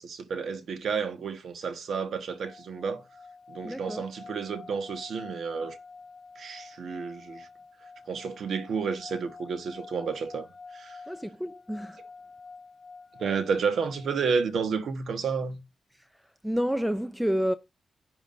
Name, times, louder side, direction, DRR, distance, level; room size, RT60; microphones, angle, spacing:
voice 1, 0.0-3.0 3.5-5.8 6.3-7.5 8.1-10.5 10.7-11.0 13.2-15.6, right 5 dB, 75° right, 1.4 m, -31 dB
sound 1, 2.3-14.2, left 4 dB, 35° left, 2.8 m, -48 dB
voice 2, 3.6-4.0 11.1-12.0 15.9-17.5, equal, ahead, 0.5 m, -30 dB
11.0 x 9.5 x 2.6 m
cardioid pair, 105°, 0 cm